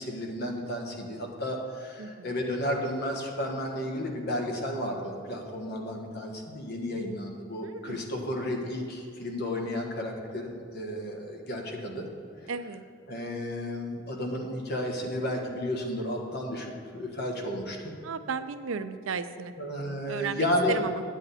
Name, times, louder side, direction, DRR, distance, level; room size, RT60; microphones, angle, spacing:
voice 1, 0.0-12.1 12.4-12.5 13.1-17.9 19.6-20.8, left 1 dB, 55° left, 1 dB, 1.4 m, -32 dB
voice 2, 7.6-8.0 12.5-12.8 18.0-19.5 20.1-21.0, right 5 dB, 80° right, 11 dB, 0.5 m, -34 dB
9.9 x 8.4 x 4.2 m, 2.4 s
head